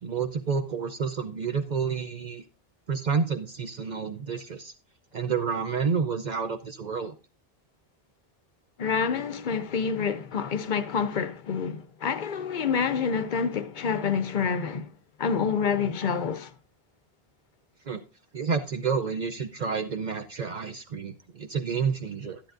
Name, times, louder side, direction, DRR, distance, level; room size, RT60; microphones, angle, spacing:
voice 1, 0.0-2.4 2.9-4.7 5.1-7.1 17.9-18.0 18.3-22.4, right 5 dB, 50° right, 0.7 m, -29 dB
voice 2, 8.8-14.9 15.2-16.5, left 6 dB, 55° left, 0.7 m, -27 dB
12.0 x 10.5 x 2.5 m
omnidirectional pair, 1.0 m